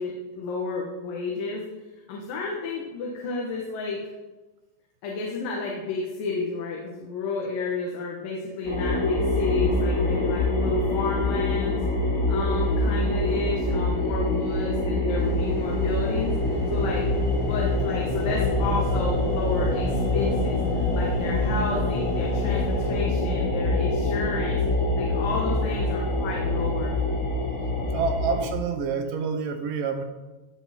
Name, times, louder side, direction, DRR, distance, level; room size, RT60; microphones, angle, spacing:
voice 1, 0.0-1.7 2.1-4.1 5.0-11.8 12.3-17.1 17.4-24.6 25.0-27.0, left 3 dB, 80° left, -2 dB, 3.1 m, -31 dB
sound 1, 8.6-28.5, left 2 dB, 60° left, 4.3 m, -25 dB
sound 2, 15.2-23.1, left 2 dB, 30° left, 3.6 m, -39 dB
voice 2, 27.9-30.0, right 5 dB, 80° right, 6 dB, 2.7 m, -28 dB
16.5 x 7.4 x 4.3 m, 1.1 s
omnidirectional pair, 3.9 m